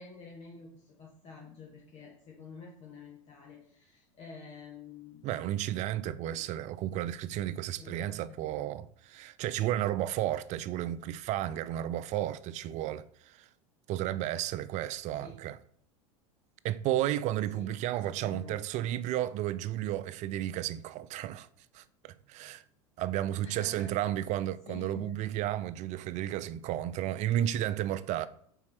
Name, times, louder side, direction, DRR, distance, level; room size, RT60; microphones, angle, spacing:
voice 1, 0.0-5.3 6.2-6.4 7.8-8.4 15.2-15.4 17.5-18.9 23.4-24.0 24.7-25.2, left 5 dB, 40° left, 1.4 m, -49 dB
voice 2, 5.2-13.5 13.9-15.6 16.6-21.5 21.7-22.6 23.0-28.3, right 12 dB, 45° right, 0.4 m, -33 dB
4.6 x 4.2 x 5.8 m
hypercardioid pair, 100°, 17 cm